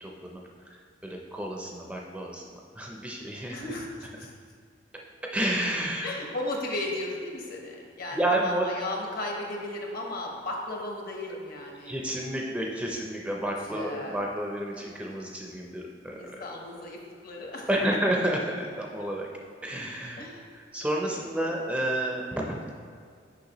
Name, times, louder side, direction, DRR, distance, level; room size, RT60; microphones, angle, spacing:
voice 1, 0.0-3.6 5.3-6.2 8.1-8.7 11.3-11.4 11.9-16.4 17.7-19.3 19.6-20.2 20.5-22.6, right 1 dB, 5° right, -1 dB, 0.4 m, -30 dB
voice 2, 3.5-4.3 6.0-12.1 13.6-14.2 14.8-14.9 16.2-17.7 20.2-20.4 21.0-21.6, left 1 dB, 55° left, 0 dB, 0.9 m, -36 dB
6.5 x 5.3 x 2.9 m, 2.2 s
head